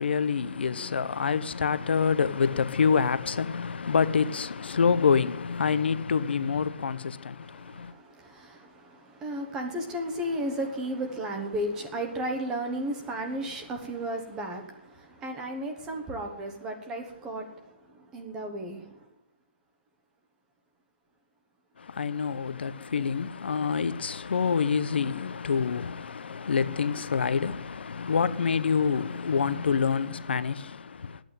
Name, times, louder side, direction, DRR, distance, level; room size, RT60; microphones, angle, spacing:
voice 1, 0.0-7.9 21.8-31.2, left 6 dB, 75° left, 0.8 m, -27 dB
voice 2, 7.4-19.0, right 1 dB, 10° right, 1.1 m, -34 dB
9.9 x 9.0 x 9.1 m
hypercardioid pair, 175°, 6 cm